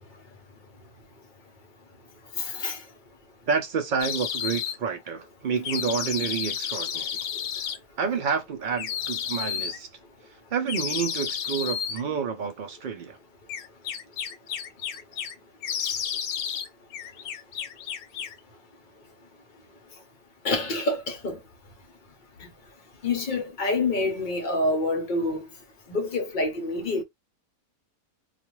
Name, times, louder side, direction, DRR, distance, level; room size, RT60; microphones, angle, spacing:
voice 1, 2.4-2.8 20.4-21.4 23.0-25.4 25.9-27.0, left 2 dB, 45° left, 0.7 m, -27 dB
voice 2, 3.5-7.1 8.0-9.9 10.5-13.2, right 6 dB, 60° right, 0.5 m, -29 dB
sound 1, 4.0-4.8 5.6-7.8 8.8-9.8 10.7-12.0 13.5-15.3 15.6-16.7 16.9-18.4, left 8 dB, 75° left, 1.0 m, -31 dB
2.4 x 2.4 x 3.0 m
omnidirectional pair, 1.5 m